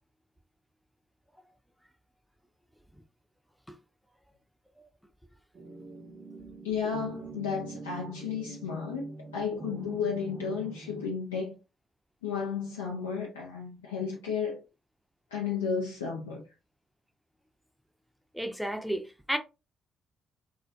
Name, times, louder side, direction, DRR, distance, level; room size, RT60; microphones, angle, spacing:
sound 1, 5.5-11.1, right 3 dB, 45° right, 0.6 m, -44 dB
voice 1, 6.6-11.6 12.2-14.6 15.3-16.4, left 6 dB, 85° left, 0.4 m, -33 dB
voice 2, 18.3-19.4, equal, ahead, 0.5 m, -33 dB
2.2 x 2.1 x 2.6 m
hypercardioid pair, 40°, 0 cm